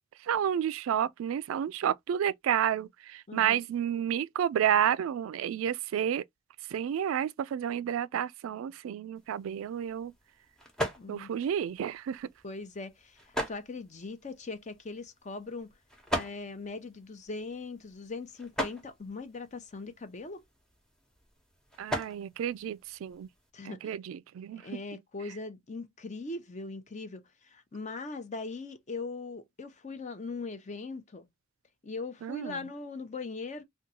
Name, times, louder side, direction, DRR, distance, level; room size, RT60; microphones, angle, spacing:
voice 1, 0.2-6.2 6.7-10.1 11.1-12.3 21.8-23.3 23.6-24.7 32.2-32.6, right 9 dB, 90° right, 0.3 m, -30 dB
voice 2, 3.3-3.6 11.0-11.3 12.4-15.7 16.1-20.4 23.5-23.9 24.6-31.3 31.8-33.6, left 3 dB, 35° left, 0.7 m, -40 dB
sound 1, 9.1-23.5, equal, 5° left, 0.9 m, -41 dB
3.6 x 2.3 x 2.8 m
head